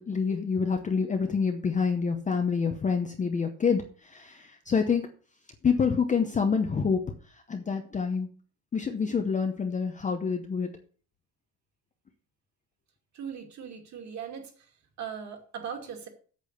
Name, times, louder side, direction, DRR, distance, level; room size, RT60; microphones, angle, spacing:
voice 1, 0.0-5.1 5.6-7.0 7.5-8.3 8.7-10.7, left 5 dB, 15° left, 5 dB, 0.8 m, -27 dB
voice 2, 13.1-14.7 15.0-16.1, right 7 dB, 35° right, 4 dB, 2.5 m, -39 dB
8.4 x 7.6 x 6.6 m, 0.41 s
cardioid pair, 170°, 46 cm